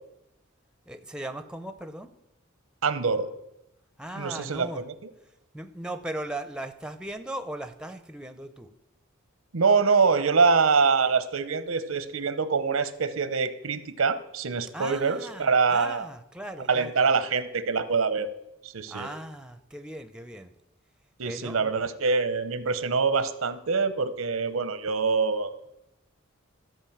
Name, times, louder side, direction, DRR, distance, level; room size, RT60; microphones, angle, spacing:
voice 1, 0.9-2.1 4.0-4.9 5.5-8.7 14.7-17.1 18.9-20.5 21.2-21.7, right 1 dB, 5° right, 9 dB, 0.6 m, -38 dB
voice 2, 2.8-3.3 4.2-4.9 9.5-16.0 16.7-18.3 18.6-19.1 21.2-25.7, right 5 dB, 85° right, 12 dB, 0.8 m, -25 dB
13.5 x 5.2 x 7.3 m, 0.86 s
head